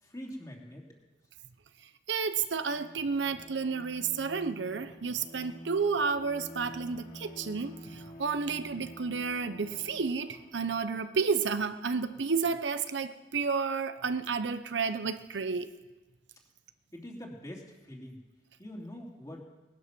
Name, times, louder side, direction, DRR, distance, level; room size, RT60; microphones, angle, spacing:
voice 1, 0.0-0.9 16.9-18.2 18.6-19.4, equal, 20° left, 2.7 m, -44 dB
voice 2, 2.1-15.7, right 5 dB, 75° right, 0.7 m, -31 dB
Bowed string instrument, 2.5-11.0, equal, 50° left, 3.5 m, -49 dB
20.0 x 11.5 x 6.0 m
head